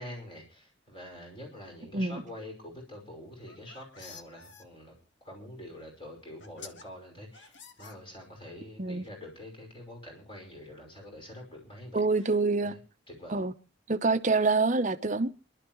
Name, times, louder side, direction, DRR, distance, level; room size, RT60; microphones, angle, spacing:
voice 1, 0.0-4.9 5.2-12.0 12.6-12.8 13.1-13.4, left 1 dB, 30° left, 5.6 m, -46 dB
sound 1, 3.3-4.6 5.8-5.9 6.4-6.8 7.3-8.4, left 6 dB, 70° left, 1.4 m, -49 dB
voice 2, 11.9-12.8 13.3-13.5 13.9-15.3, right 3 dB, 40° right, 0.9 m, -26 dB
29.0 x 12.0 x 3.1 m
head